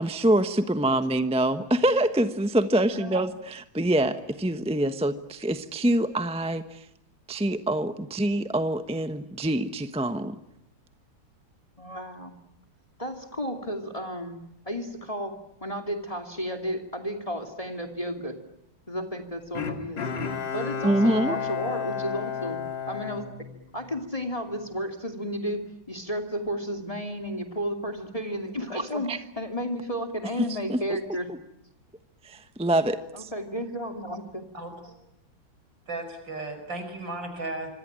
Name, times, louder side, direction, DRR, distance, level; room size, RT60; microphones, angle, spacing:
voice 1, 0.0-6.8 7.3-10.4 20.8-21.4 28.7-28.8 29.1-29.2 30.7-30.8 32.2-33.3, right 1 dB, 5° right, 9 dB, 0.8 m, -25 dB
voice 2, 2.9-3.2 11.8-12.3 13.0-14.4 14.7-18.3 18.9-20.1 20.5-22.6 22.9-23.3 23.7-31.3 33.1-34.5, equal, 15° left, 5 dB, 2.6 m, -33 dB
Bowed string instrument, 19.6-24.1 24.5-24.6, left 7 dB, 70° left, 2.9 m, -32 dB
voice 3, 34.5-35.0 35.9-37.7, right 2 dB, 70° right, 8 dB, 6.1 m, -35 dB
26.0 x 26.0 x 8.9 m, 0.79 s
omnidirectional pair, 2.1 m